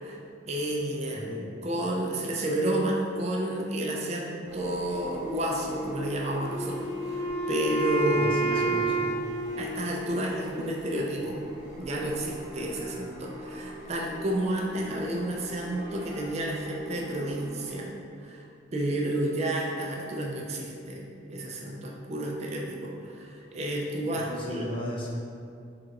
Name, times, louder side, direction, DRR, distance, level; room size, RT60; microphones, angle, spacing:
voice 1, 0.5-8.9 9.6-11.4 11.8-17.9 18.2-18.4 18.7-24.7, right 1 dB, 35° right, -1 dB, 0.4 m, -31 dB
sound 1, 4.5-17.7, right 1 dB, 5° right, 0.8 m, -42 dB
Wind instrument woodwind instrument, 6.4-10.5, right 3 dB, 85° right, 1.0 m, -30 dB
voice 2, 8.1-9.1 24.1-25.1, equal, 25° left, -4 dB, 0.6 m, -36 dB
3.8 x 2.4 x 4.6 m, 2.5 s
head